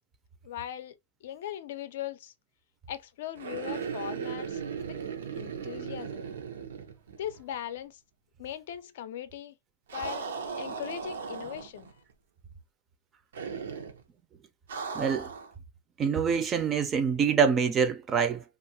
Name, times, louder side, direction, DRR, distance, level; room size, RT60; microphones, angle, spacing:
voice 1, 0.4-0.9 1.2-2.3 2.9-4.6 4.9-5.0 5.3-6.3 7.2-8.0 8.4-9.5 9.9-10.3 10.6-11.9, left 11 dB, 65° left, 0.4 m, -39 dB
sound 1, 3.4-7.5 7.8-7.9 9.9-11.9 13.3-14.0 14.7-15.5, right 6 dB, 80° right, 0.7 m, -37 dB
voice 2, 14.9-15.3 16.0-18.4, right 6 dB, 25° right, 0.5 m, -25 dB
2.6 x 2.4 x 2.7 m
hypercardioid pair, 135°, 0 cm